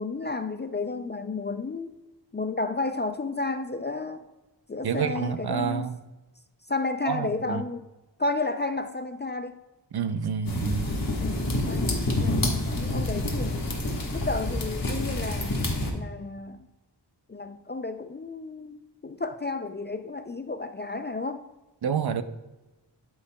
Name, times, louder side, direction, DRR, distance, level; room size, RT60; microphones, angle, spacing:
voice 1, 0.0-1.9 2.3-4.2 4.7-5.8 6.7-7.8 8.2-9.6 11.2-13.6 14.1-15.6 15.9-16.6 17.3-21.4, left 3 dB, 25° left, 9 dB, 0.3 m, -32 dB
voice 2, 4.8-6.0 7.0-7.6 9.9-10.9 21.8-22.2, right 7 dB, 60° right, 11 dB, 0.6 m, -28 dB
sound 1, 10.4-15.9, left 1 dB, 50° left, 1.5 m, -28 dB
12.5 x 5.5 x 2.2 m, 1.1 s
wide cardioid pair, 80°, 43 cm